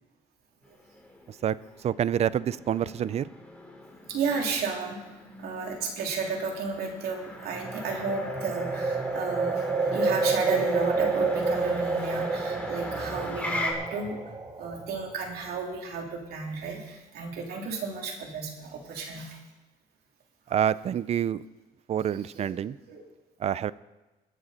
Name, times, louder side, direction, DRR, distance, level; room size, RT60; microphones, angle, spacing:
Motor vehicle (road), 0.6-13.7, left 2 dB, 10° left, 2.7 m, -41 dB
voice 1, 1.3-3.3 20.5-21.4 21.9-22.8 23.4-23.7, right 9 dB, 40° right, 19 dB, 0.4 m, -27 dB
voice 2, 4.1-5.0 5.4-14.2 14.6-19.4 22.3-22.5 22.9-23.0, right 4 dB, 65° right, 1 dB, 3.0 m, -33 dB
sound 1, 7.5-15.5, right 3 dB, 20° right, 1.2 m, -29 dB
23.0 x 8.0 x 4.2 m, 1.1 s
cardioid pair, 110°, 17 cm